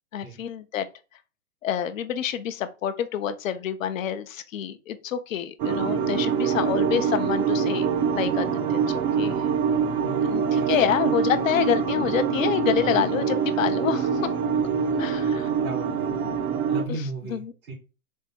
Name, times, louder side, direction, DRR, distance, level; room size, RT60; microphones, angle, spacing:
voice 1, 0.1-0.9 1.6-8.8 9.2-9.3 10.2-14.3 15.0-15.5 16.9-17.5, left 9 dB, 70° left, 0.7 m, -27 dB
sound 1, 5.6-16.8, right 6 dB, 25° right, 0.5 m, -25 dB
voice 2, 10.0-10.7 15.6-16.1 16.7-17.7, right 3 dB, 75° right, 1.8 m, -35 dB
3.6 x 3.4 x 4.2 m
hypercardioid pair, 130°, 42 cm